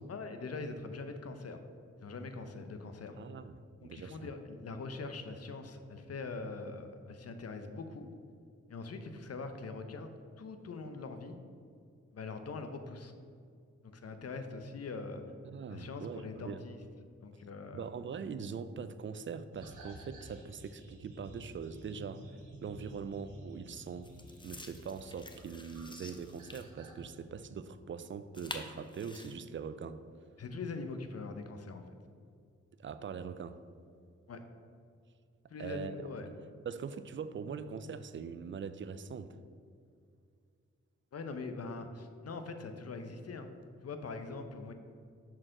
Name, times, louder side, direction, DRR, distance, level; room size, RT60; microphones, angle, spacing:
voice 1, 0.1-1.6 2.0-3.2 3.8-8.1 8.7-10.1 10.4-11.4 12.1-13.1 13.8-15.2 15.7-16.8 17.2-17.9 30.4-31.8 34.3-34.4 35.5-36.3 41.1-43.5 43.8-44.7, left 3 dB, 55° left, 7 dB, 0.7 m, -42 dB
voice 2, 3.2-4.3 15.4-16.6 17.7-22.3 22.6-24.1 24.4-30.0 32.8-33.6 35.6-36.4 36.7-39.4, right 6 dB, 40° right, 13 dB, 0.4 m, -42 dB
sound 1, 19.5-27.1, right 1 dB, 85° right, 1.0 m, -53 dB
sound 2, 22.4-22.5 24.0-26.6 28.3-29.3, left 2 dB, 15° left, 0.7 m, -48 dB
6.1 x 4.4 x 3.8 m, 2.3 s
supercardioid pair, 40°, 30 cm